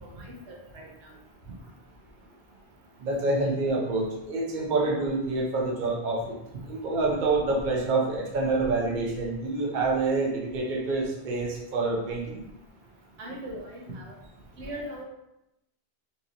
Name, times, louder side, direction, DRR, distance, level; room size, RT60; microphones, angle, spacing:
voice 1, 0.0-0.9 13.2-14.1 14.6-15.0, right 1 dB, 85° right, -2 dB, 0.9 m, -39 dB
voice 2, 3.0-6.4 6.7-12.4, right 3 dB, 55° right, -3 dB, 0.8 m, -27 dB
3.0 x 2.7 x 2.5 m, 0.86 s
omnidirectional pair, 1.1 m